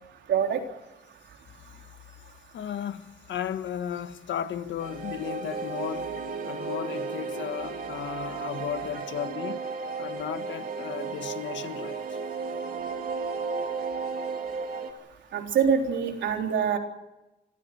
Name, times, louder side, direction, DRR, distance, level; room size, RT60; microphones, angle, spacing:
voice 1, 0.3-0.6 15.3-16.8, right 7 dB, 85° right, 3.9 m, -24 dB
voice 2, 2.5-6.1 6.4-9.6 10.0-12.2, left 9 dB, 85° left, 1.6 m, -35 dB
sound 1, 4.8-14.9, right 5 dB, 50° right, 3.3 m, -34 dB
26.0 x 16.0 x 7.9 m
wide cardioid pair, 160°, 18 cm